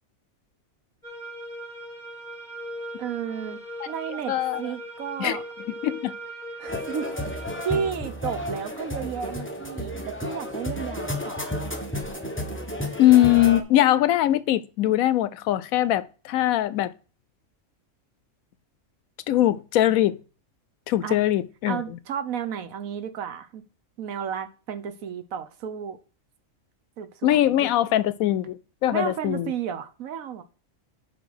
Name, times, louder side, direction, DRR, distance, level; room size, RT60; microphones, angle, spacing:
sound 1, 1.0-7.9, equal, 35° left, 2.1 m, -39 dB
voice 1, 3.0-5.4 6.6-7.2 7.6-11.6 21.0-21.2 21.7-23.6 24.0-26.0 27.0-27.7 28.9-30.4, right 8 dB, 80° right, 1.3 m, -33 dB
voice 2, 4.3-4.6 5.2-5.4 5.8-6.1 13.0-16.9 19.3-20.2 20.9-21.8 27.2-29.5, left 13 dB, 85° left, 1.0 m, -21 dB
sound 2, 6.7-13.6, left 1 dB, 10° left, 0.9 m, -32 dB
6.1 x 5.4 x 6.4 m
omnidirectional pair, 1.4 m